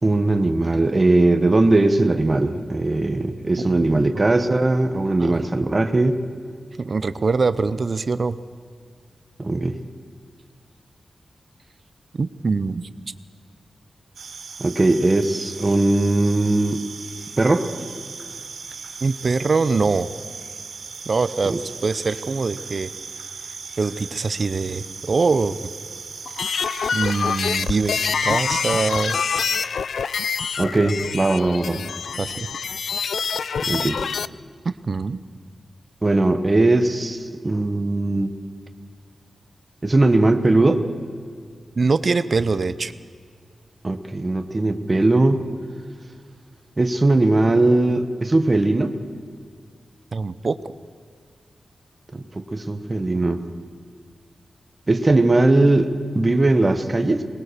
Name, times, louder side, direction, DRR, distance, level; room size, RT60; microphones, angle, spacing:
voice 1, 0.0-6.2 9.4-9.8 14.6-16.8 17.4-17.7 21.5-21.6 30.6-31.8 33.7-34.0 36.0-38.3 39.8-40.8 43.8-45.5 46.8-49.0 52.1-53.4 54.9-57.2, right 2 dB, 25° right, 7 dB, 1.1 m, -19 dB
voice 2, 3.7-4.2 5.2-5.4 6.8-8.4 12.2-12.9 19.0-20.1 21.1-22.9 23.8-25.6 26.9-29.2 31.8-31.9 32.2-32.5 34.6-35.2 41.8-42.9 50.1-50.6, right 4 dB, 40° right, 14 dB, 0.7 m, -23 dB
sound 1, 14.1-29.7, right 5 dB, 75° right, 2.5 m, -38 dB
sound 2, 26.3-34.3, left 6 dB, 75° left, 0.4 m, -26 dB
22.5 x 20.0 x 6.8 m, 2.1 s
wide cardioid pair, 170°, 0 cm